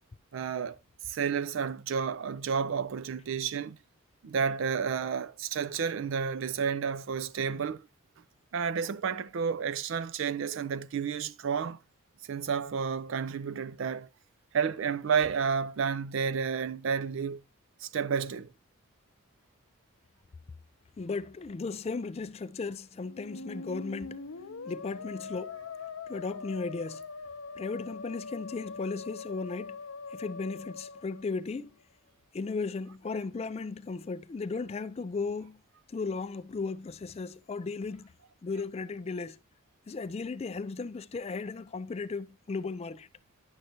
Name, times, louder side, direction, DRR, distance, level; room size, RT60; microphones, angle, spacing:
voice 1, 0.3-0.8 1.0-3.8 4.2-7.9 8.5-11.8 12.2-14.1 14.5-17.4 17.8-18.5, right 6 dB, 60° right, 0.4 m, -31 dB
voice 2, 21.0-24.2 24.6-25.6 26.1-27.0 27.6-29.8 30.1-31.7 32.3-35.6 35.9-38.1 38.4-39.4 39.9-43.1, left 4 dB, 30° left, 0.3 m, -36 dB
Musical instrument, 23.1-31.8, left 4 dB, 65° left, 0.6 m, -42 dB
10.5 x 6.5 x 2.8 m
head